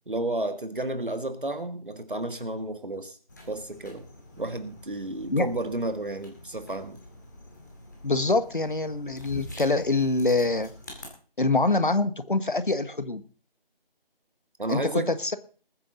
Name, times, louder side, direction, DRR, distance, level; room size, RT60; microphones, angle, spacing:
voice 1, 0.1-3.2 3.5-4.1 4.4-7.0 14.6-15.1, right 2 dB, 60° right, 8 dB, 1.9 m, -31 dB
sound 1, 3.3-11.1, left 1 dB, 20° left, 2.4 m, -46 dB
voice 2, 8.0-10.7 11.4-13.2 14.7-15.4, left 3 dB, 55° left, 11 dB, 1.5 m, -25 dB
20.5 x 9.1 x 4.0 m, 0.40 s
figure-of-eight pair, 170°, 29 cm